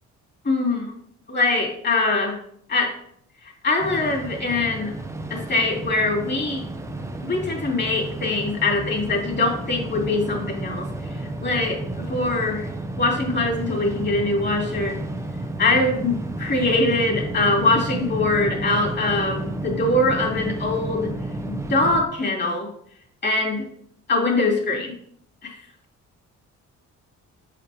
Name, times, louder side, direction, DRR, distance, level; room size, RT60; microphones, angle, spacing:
voice 1, 0.4-1.0 1.3-2.4 2.7-2.9 3.4-4.9 5.3-6.6 7.2-12.7 13.0-14.9 15.6-21.1 21.5-22.7 23.2-23.6 24.1-24.9 25.4-25.6, left 2 dB, 35° left, -2 dB, 2.6 m, -23 dB
sound 1, 3.8-22.0, right 2 dB, 10° right, 0.7 m, -31 dB
6.7 x 5.0 x 3.5 m, 0.66 s
cardioid pair, 90°, 30 cm